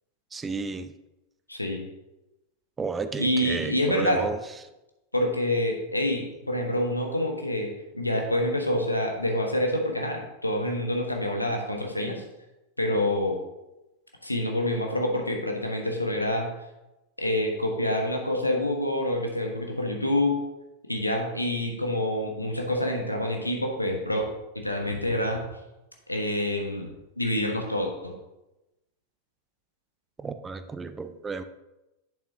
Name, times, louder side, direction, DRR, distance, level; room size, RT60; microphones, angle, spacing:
voice 1, 0.3-0.9 2.8-4.4 30.2-31.4, right 4 dB, 15° right, 11 dB, 0.5 m, -32 dB
voice 2, 1.5-1.8 3.2-4.3 5.1-12.2 12.8-13.4 14.2-16.5 17.2-20.4 20.9-24.3 24.5-25.5 26.1-26.9 27.2-28.1, left 1 dB, 85° left, 2 dB, 1.1 m, -27 dB
8.2 x 7.0 x 2.8 m, 0.98 s
figure-of-eight pair, 90°, 0 cm